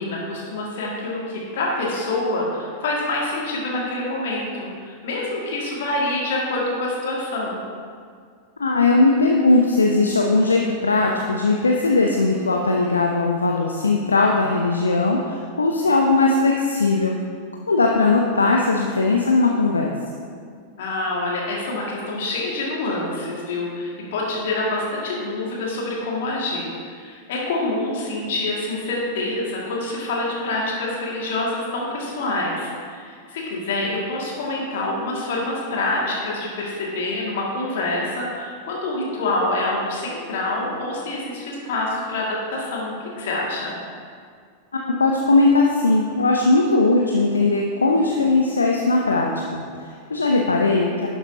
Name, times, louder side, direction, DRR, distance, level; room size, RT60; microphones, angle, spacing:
voice 1, 0.0-7.6 20.8-26.7 26.9-43.8, left 2 dB, 55° left, -3 dB, 2.0 m, -26 dB
voice 2, 8.6-17.2 17.7-19.9 44.7-51.1, left 3 dB, 75° left, 0 dB, 0.5 m, -19 dB
11.0 x 6.9 x 2.8 m, 2.1 s
figure-of-eight pair, 90°, 0 cm